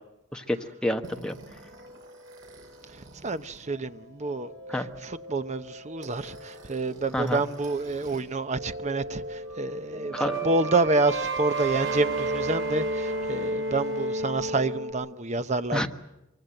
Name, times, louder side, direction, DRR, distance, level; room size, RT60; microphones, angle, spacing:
voice 1, 0.3-1.4 4.7-4.9 7.1-7.4 10.1-10.4 15.7-15.9, left 1 dB, 5° left, 1.3 m, -28 dB
sound 1, 1.0-8.2 8.5-14.9, right 2 dB, 75° right, 7.3 m, -34 dB
voice 2, 3.2-15.9, right 3 dB, 35° right, 0.8 m, -28 dB
24.0 x 24.0 x 7.8 m
head